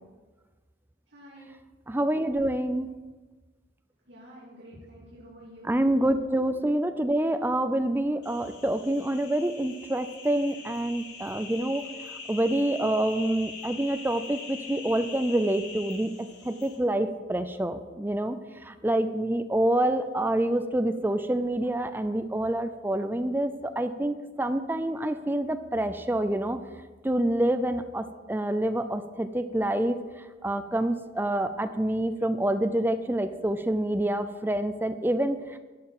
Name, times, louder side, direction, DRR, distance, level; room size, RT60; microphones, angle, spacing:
voice 1, 1.1-1.5 4.1-6.0 6.4-6.5 7.3-7.4, equal, 75° right, -6 dB, 2.3 m, -49 dB
voice 2, 1.9-2.9 5.7-11.9 12.3-16.1 16.4-18.4 18.6-26.6 27.0-30.0 30.4-35.6, right 1 dB, 10° right, 10 dB, 0.4 m, -27 dB
sound 1, 8.2-16.8, left 4 dB, 75° left, 3.1 m, -43 dB
12.5 x 4.5 x 7.7 m, 1.3 s
head